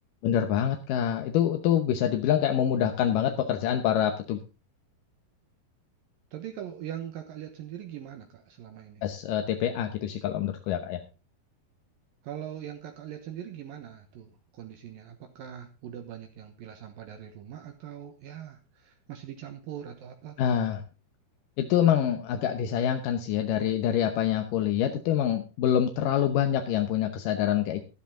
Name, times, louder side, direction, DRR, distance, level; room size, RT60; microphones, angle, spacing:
voice 1, 0.2-4.4 9.0-11.0 20.4-20.8 21.6-27.8, left 10 dB, 70° left, 5 dB, 2.3 m, -26 dB
voice 2, 6.3-9.0 12.2-14.3 14.6-20.4, right 10 dB, 70° right, 5 dB, 2.7 m, -41 dB
12.5 x 12.0 x 3.7 m, 0.30 s
omnidirectional pair, 4.6 m